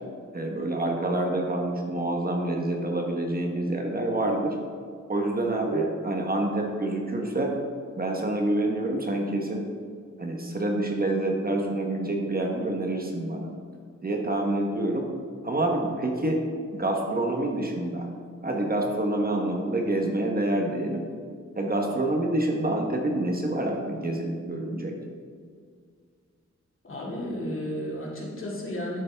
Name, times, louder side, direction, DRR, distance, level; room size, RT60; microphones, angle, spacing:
voice 1, 0.3-4.6 5.1-7.5 8.0-9.7 10.2-13.5 14.0-15.1 15.4-16.4 16.7-18.1 18.4-21.1 21.5-25.0, right 1 dB, 30° right, 1 dB, 1.1 m, -27 dB
voice 2, 26.8-29.0, equal, 45° left, -3 dB, 2.2 m, -33 dB
11.5 x 8.3 x 3.4 m, 2.1 s
wide cardioid pair, 140°, 29 cm